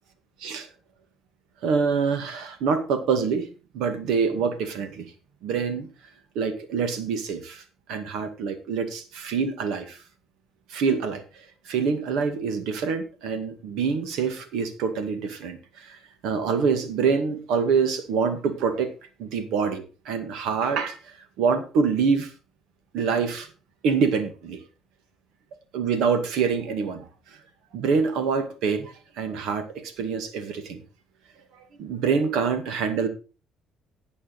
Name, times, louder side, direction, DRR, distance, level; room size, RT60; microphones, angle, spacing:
voice 1, 1.6-3.5 3.7-5.1 5.4-5.9 6.4-7.6 7.9-10.0 10.7-11.2 11.7-16.0 16.2-18.9 19.2-21.0 21.4-22.3 22.9-23.5 23.8-24.6 25.7-27.1 27.7-30.8 31.8-33.1, right 5 dB, 80° right, 9 dB, 2.0 m, -25 dB
12.0 x 8.5 x 4.1 m, 0.34 s
cardioid pair, 150°, 0 cm